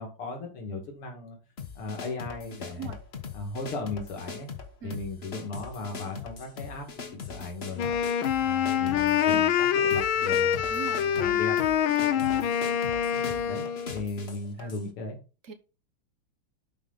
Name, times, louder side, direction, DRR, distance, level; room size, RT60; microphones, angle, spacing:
voice 1, 0.0-1.4 1.7-3.0 3.3-4.5 4.8-6.9 7.1-7.9 8.4-11.9 12.1-12.5 13.1-13.7 13.9-15.2, left 3 dB, 90° left, 3.1 m, -37 dB
sound 1, 1.6-14.9, left 5 dB, 35° left, 1.1 m, -41 dB
Wind instrument woodwind instrument, 7.8-14.0, left 9 dB, 70° left, 1.5 m, -25 dB
voice 2, 10.7-11.0 12.0-12.1 14.6-14.7 15.4-15.5, right 7 dB, 45° right, 1.2 m, -40 dB
11.5 x 5.4 x 4.0 m
omnidirectional pair, 2.4 m